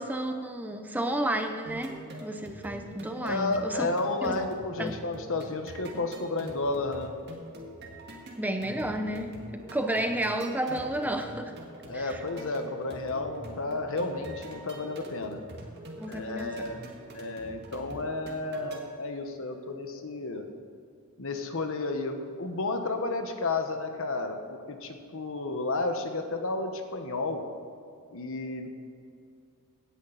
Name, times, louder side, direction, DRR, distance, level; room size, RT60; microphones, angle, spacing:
voice 1, 0.0-3.9 4.2-4.3 4.8-4.9 8.4-11.5 11.9-12.2 16.0-16.5, right 1 dB, 10° right, 6 dB, 0.7 m, -31 dB
sound 1, 1.7-18.8, right 1 dB, 50° right, 1.9 m, -45 dB
voice 2, 3.2-7.2 11.9-15.4 16.1-16.9 17.1-20.5 21.2-27.5 28.1-28.7, left 3 dB, 65° left, 6 dB, 1.2 m, -32 dB
17.0 x 10.0 x 4.1 m, 2.4 s
head